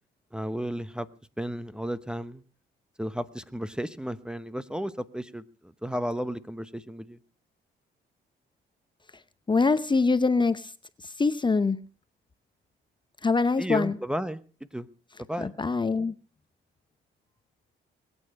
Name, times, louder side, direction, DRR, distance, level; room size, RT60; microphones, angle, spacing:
voice 1, 0.3-1.1 1.4-2.4 3.0-5.4 5.8-7.2 13.6-14.4 14.7-14.9 15.3-15.5, equal, 5° right, 14 dB, 0.9 m, -33 dB
voice 2, 9.5-10.7 11.0-11.8 13.2-14.0 15.4-16.1, left 4 dB, 25° left, 14 dB, 0.8 m, -24 dB
22.0 x 8.9 x 6.5 m, 0.39 s
cardioid pair, 90°, 20 cm